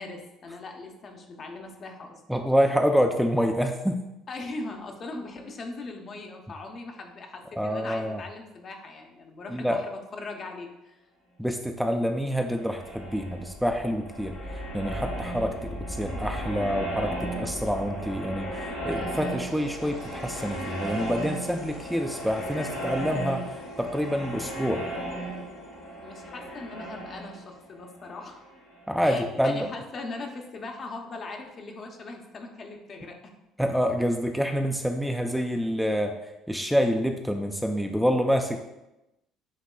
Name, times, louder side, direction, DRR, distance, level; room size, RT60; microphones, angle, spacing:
voice 1, 0.0-2.2 4.3-11.0 26.0-28.4 29.0-33.3, left 3 dB, 45° left, 3 dB, 0.8 m, -40 dB
voice 2, 2.3-4.0 7.5-8.2 9.5-9.8 11.4-24.8 28.9-29.7 33.6-36.1 36.5-38.6, equal, ahead, 4 dB, 0.4 m, -27 dB
sound 1, 12.3-29.0, right 1 dB, 70° left, 1.4 m, -36 dB
7.4 x 3.0 x 2.2 m, 0.94 s
hypercardioid pair, 60°, 0 cm